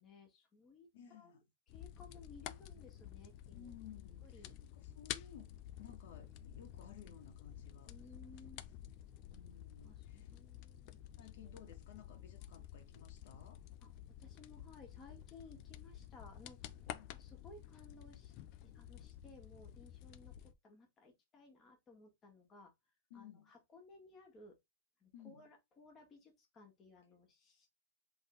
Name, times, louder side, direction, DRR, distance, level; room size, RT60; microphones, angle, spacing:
voice 1, 0.0-1.4 1.7-3.7 4.2-4.6 7.9-8.6 9.8-11.2 12.5-12.7 13.8-16.8 17.1-18.3 18.6-22.7 23.1-24.6 25.0-27.7, left 3 dB, 20° left, 1.9 m, -60 dB
voice 2, 0.9-1.4 3.5-4.5 4.7-7.9 8.9-9.0 9.3-10.3 11.2-13.6 16.8-17.2 23.1-23.5 25.1-25.5, left 8 dB, 60° left, 1.6 m, -57 dB
sound 1, 1.7-20.5, left 12 dB, 40° left, 0.4 m, -51 dB
3.8 x 3.7 x 3.8 m
supercardioid pair, 155°, 0 cm